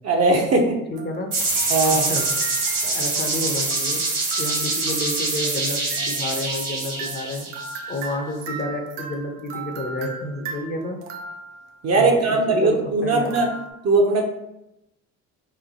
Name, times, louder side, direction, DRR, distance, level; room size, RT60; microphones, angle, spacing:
voice 1, 0.0-0.8 1.7-2.1 11.8-13.5 13.8-14.2, right 2 dB, 40° right, 1 dB, 0.8 m, -19 dB
voice 2, 0.9-1.4 1.9-2.3 2.8-4.0 4.4-7.5 7.9-11.0 11.9-13.4, left 1 dB, 25° left, 2 dB, 0.7 m, -30 dB
sound 1, 0.9-11.8 13.2-13.7, right 4 dB, 80° right, 0.6 m, -38 dB
sound 2, 1.3-8.0, right 3 dB, 60° right, 1.4 m, -25 dB
3.1 x 2.2 x 3.9 m, 0.87 s
hypercardioid pair, 55°, 40 cm